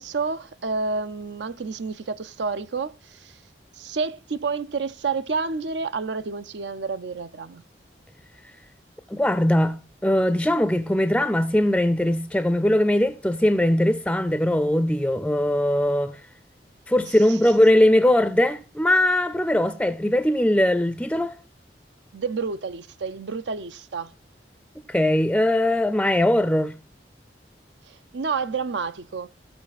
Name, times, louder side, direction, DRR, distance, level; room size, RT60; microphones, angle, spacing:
voice 1, 0.0-3.4 3.8-7.6 17.0-17.4 22.1-24.1 27.9-29.3, right 4 dB, 85° right, 0.6 m, -29 dB
voice 2, 9.1-9.8 10.0-16.2 16.9-21.3 24.9-26.7, left 1 dB, 5° left, 0.4 m, -20 dB
16.0 x 6.1 x 4.1 m
head